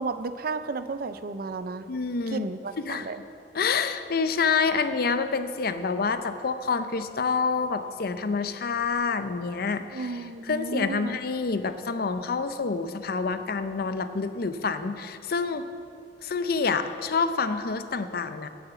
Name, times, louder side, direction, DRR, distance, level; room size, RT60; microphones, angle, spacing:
voice 1, 0.0-1.8 2.3-3.2 9.9-11.2, right 3 dB, 55° right, 12 dB, 0.5 m, -33 dB
voice 2, 1.9-2.5 2.8-3.1 3.5-15.6 16.2-18.5, left 5 dB, 60° left, 10 dB, 0.6 m, -27 dB
9.5 x 7.1 x 8.2 m, 2.6 s
head